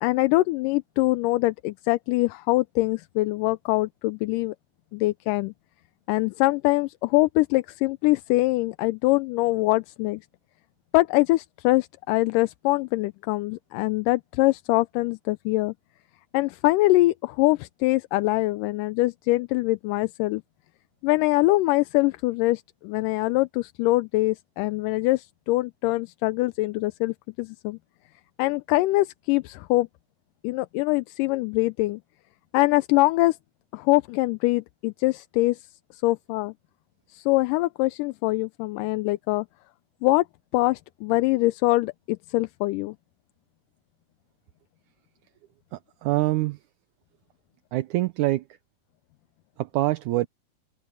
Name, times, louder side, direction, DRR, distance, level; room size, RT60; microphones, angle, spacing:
voice 1, 0.0-4.6 4.9-5.5 6.1-10.2 10.9-15.7 16.3-20.4 21.0-27.8 28.4-29.9 30.4-32.0 32.5-33.4 33.7-35.6 35.9-36.5 37.1-39.5 40.0-40.3 40.5-43.0, left 20 dB, 85° left, 2.2 m, -23 dB
voice 2, 45.7-46.6 47.7-48.4 49.6-50.3, right 17 dB, 75° right, 2.1 m, -25 dB
open air
omnidirectional pair, 3.7 m